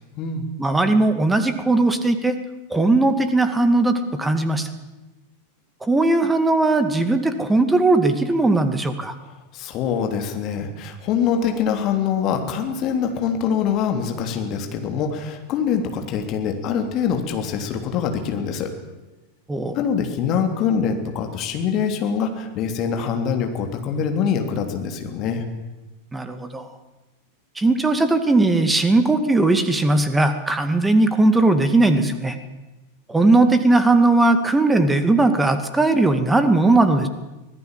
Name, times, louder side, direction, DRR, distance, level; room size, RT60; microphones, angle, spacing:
voice 1, 0.6-2.4 2.7-4.7 5.8-9.1 19.5-19.8 26.1-26.7 27.6-32.4 33.1-37.1, right 2 dB, 10° right, 10 dB, 2.2 m, -18 dB
voice 2, 9.5-18.7 19.7-25.4, left 7 dB, 35° left, 5 dB, 3.4 m, -24 dB
25.0 x 17.5 x 7.6 m, 1.1 s
figure-of-eight pair, 90°, 0 cm